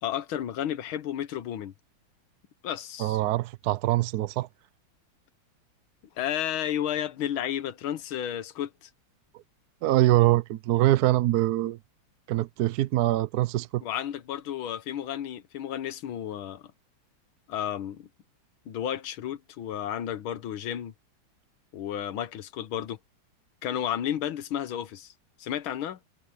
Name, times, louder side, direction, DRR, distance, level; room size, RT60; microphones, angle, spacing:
voice 1, 0.0-1.7 2.6-3.2 6.2-8.9 13.8-16.7 17.5-18.1 18.7-20.9 21.7-23.0 23.6-25.1 25.4-26.0, left 10 dB, 85° left, 1.9 m, -32 dB
voice 2, 3.0-4.5 9.8-11.8 12.3-13.8, right 15 dB, 70° right, 0.9 m, -24 dB
omnidirectional pair, 2.2 m